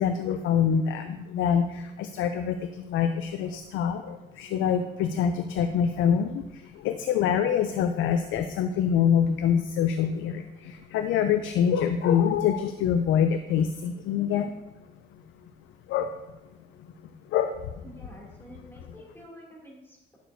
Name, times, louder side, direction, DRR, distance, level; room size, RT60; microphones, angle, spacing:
voice 1, 0.0-14.5 15.9-16.2 16.8-16.9 17.3-17.6, left 8 dB, 85° left, 8 dB, 0.5 m, -25 dB
voice 2, 17.8-20.2, equal, 10° left, -4 dB, 2.7 m, -48 dB
10.5 x 6.3 x 2.7 m, 1.0 s
cardioid pair, 90°, 20 cm